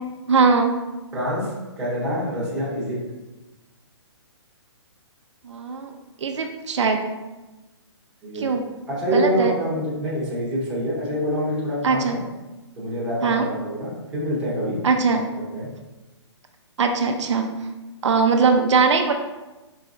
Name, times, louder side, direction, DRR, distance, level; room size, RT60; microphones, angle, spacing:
voice 1, 0.3-0.8 5.4-5.9 6.2-7.0 8.4-8.6 9.1-9.5 11.8-12.2 13.2-13.5 14.8-15.2 16.8-17.6 18.0-19.1, right 4 dB, 75° right, 4 dB, 0.5 m, -20 dB
voice 2, 1.1-3.0 8.2-8.4 8.9-12.2 12.8-14.8 15.1-15.2 15.5-15.7, equal, 5° right, -9 dB, 1.0 m, -26 dB
4.6 x 3.2 x 2.6 m, 1.1 s
hypercardioid pair, 170°, 15 cm